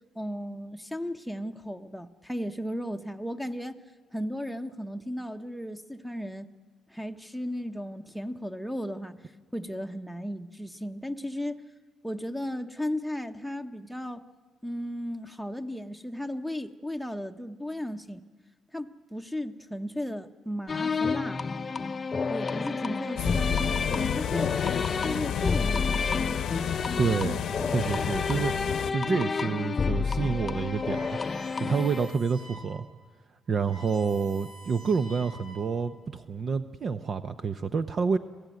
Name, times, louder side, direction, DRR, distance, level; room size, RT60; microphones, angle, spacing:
voice 1, 0.1-3.8 4.1-6.5 6.9-9.2 9.5-11.6 12.0-14.2 14.6-18.3 18.7-21.4 22.3-24.6 25.0-26.3, equal, ahead, 8 dB, 1.0 m, -35 dB
sound 1, 20.7-32.2, left 4 dB, 35° left, 0.6 m, -30 dB
sound 2, 23.1-28.9, left 10 dB, 85° left, 0.9 m, -32 dB
voice 2, 27.0-27.4 27.7-28.5 28.9-31.2 31.6-32.8 33.5-38.2, right 5 dB, 50° right, 10 dB, 0.7 m, -28 dB
sound 3, 30.8-32.8 33.2-33.3 33.5-35.9, right 1 dB, 80° right, 7.7 m, -48 dB
26.0 x 16.5 x 9.3 m, 1.5 s
cardioid pair, 90°, 0 cm